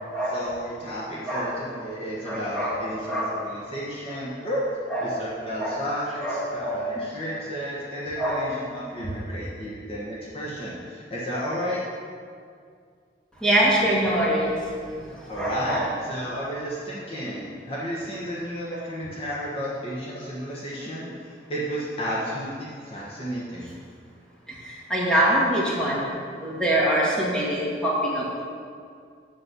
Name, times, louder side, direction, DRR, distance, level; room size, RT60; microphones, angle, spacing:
voice 1, 0.3-4.7 5.0-11.8 15.3-23.7, equal, 30° left, -6 dB, 1.3 m, -32 dB
voice 2, 2.2-2.8 3.1-3.3 4.9-5.0 5.6-5.8 6.2-6.9 8.2-8.4 13.4-14.9 15.2-15.8 24.5-26.1 26.4-28.4, right 1 dB, 5° left, -6 dB, 2.0 m, -24 dB
8.2 x 7.5 x 6.2 m, 2.2 s
head